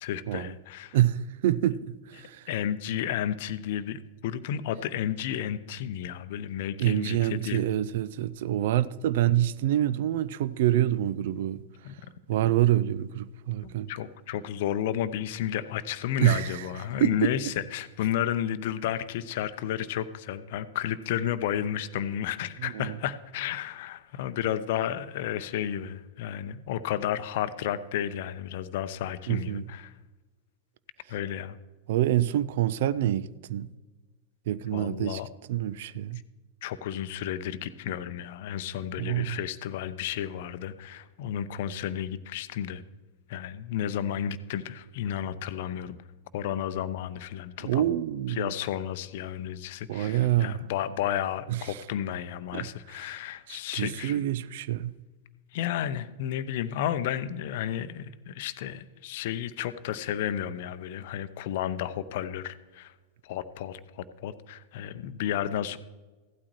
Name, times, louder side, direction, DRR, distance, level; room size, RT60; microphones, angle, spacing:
voice 1, 0.0-1.0 2.5-7.7 11.8-11.9 13.6-29.9 31.1-31.6 34.7-35.3 36.6-42.8 43.3-46.0 46.3-48.0 48.3-54.3 55.5-62.9 63.2-65.8, left 10 dB, 50° left, 0.6 m, -32 dB
voice 2, 0.9-2.5 6.8-11.6 12.3-13.9 16.2-16.7 17.0-17.5 22.6-23.0 29.3-29.7 31.9-33.7 34.5-35.2 35.5-36.2 39.0-39.4 47.6-48.5 49.9-50.6 51.5-51.8 52.5-52.7 53.5-55.0, right 12 dB, 55° right, 0.4 m, -26 dB
16.0 x 12.0 x 3.1 m
figure-of-eight pair, 90°, 0 cm